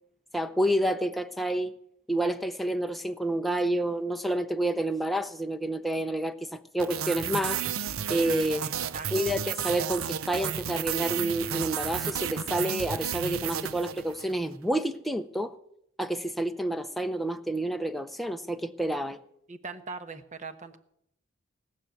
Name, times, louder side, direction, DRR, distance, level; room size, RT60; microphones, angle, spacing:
voice 1, 0.3-1.7 2.1-7.6 8.1-8.7 9.1-15.5 16.0-19.2, right 1 dB, ahead, 0.6 m, -29 dB
sound 1, 6.8-14.4, right 8 dB, 90° right, 0.7 m, -32 dB
voice 2, 8.6-9.4 19.5-20.8, right 4 dB, 35° right, 1.1 m, -41 dB
18.5 x 7.0 x 9.0 m
head